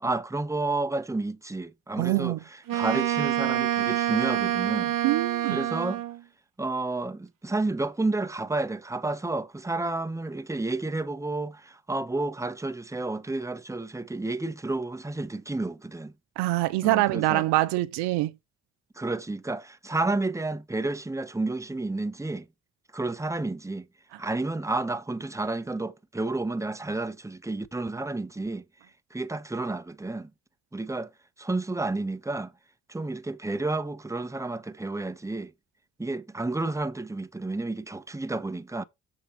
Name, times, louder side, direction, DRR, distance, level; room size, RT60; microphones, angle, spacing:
voice 1, 0.0-2.4 2.7-4.9 5.5-6.0 6.6-16.1 16.8-17.5 19.0-22.4 22.9-23.9 24.2-28.6 29.1-30.3 30.7-31.1 31.4-32.5 32.9-35.5 36.0-38.8, right 2 dB, 5° right, 0.9 m, -31 dB
voice 2, 2.0-2.4 5.0-5.6 16.4-18.3, right 18 dB, 85° right, 0.7 m, -24 dB
Wind instrument woodwind instrument, 2.7-6.2, right 12 dB, 55° right, 0.8 m, -27 dB
7.0 x 3.8 x 6.1 m
supercardioid pair, 50°, 40 cm